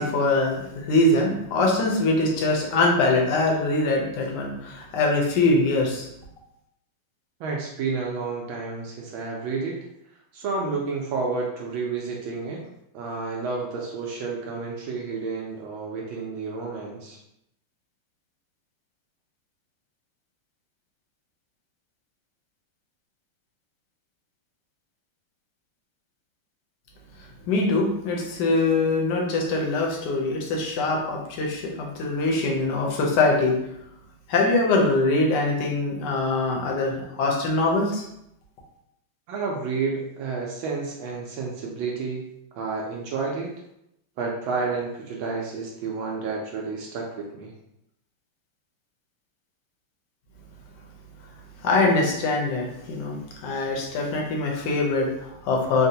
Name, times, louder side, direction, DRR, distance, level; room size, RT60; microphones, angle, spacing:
voice 1, 0.0-6.1 27.5-33.6 34.3-38.0 51.6-53.2 53.4-55.9, left 2 dB, 70° left, -1 dB, 1.1 m, -23 dB
voice 2, 7.4-9.8 10.3-12.6 12.9-17.2 39.3-42.3 42.6-43.5 44.2-47.5, right 4 dB, 75° right, -1 dB, 1.2 m, -30 dB
3.9 x 2.2 x 2.7 m, 0.80 s
omnidirectional pair, 2.4 m